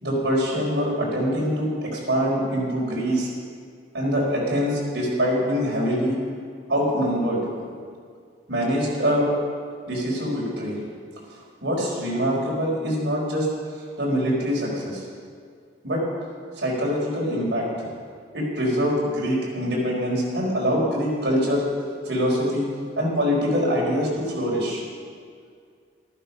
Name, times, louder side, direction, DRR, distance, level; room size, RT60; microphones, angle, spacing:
voice 1, 0.0-3.3 3.9-6.2 6.7-7.4 8.5-9.3 9.9-10.8 11.6-13.5 14.0-15.0 15.8-16.0 16.6-17.9 18.3-21.6 22.0-22.7 23.0-24.8, equal, 65° right, -4 dB, 4.7 m, -24 dB
14.0 x 13.0 x 5.6 m, 2.1 s
head